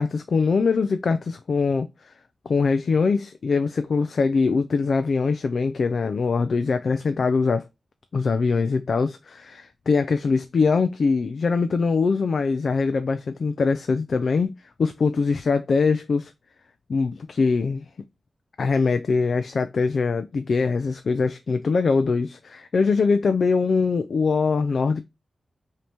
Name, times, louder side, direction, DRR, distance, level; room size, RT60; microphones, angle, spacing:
voice 1, 0.0-2.1 2.5-7.6 8.1-14.5 14.8-16.3 16.9-17.8 18.6-25.0, left 4 dB, 65° left, 0.4 m, -22 dB
5.1 x 2.8 x 2.9 m
wide cardioid pair, 90°, 0 cm